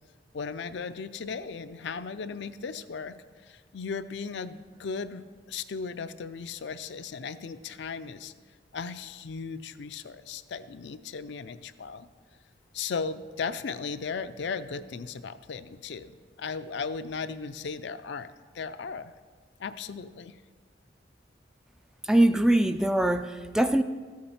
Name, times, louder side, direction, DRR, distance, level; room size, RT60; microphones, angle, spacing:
voice 1, 0.3-3.2 3.4-8.3 8.7-12.1 12.7-19.1 19.6-20.4, left 5 dB, 70° left, 11 dB, 0.5 m, -36 dB
voice 2, 22.1-23.8, right 1 dB, 5° right, 9 dB, 0.3 m, -22 dB
13.5 x 8.7 x 4.3 m, 1.5 s
head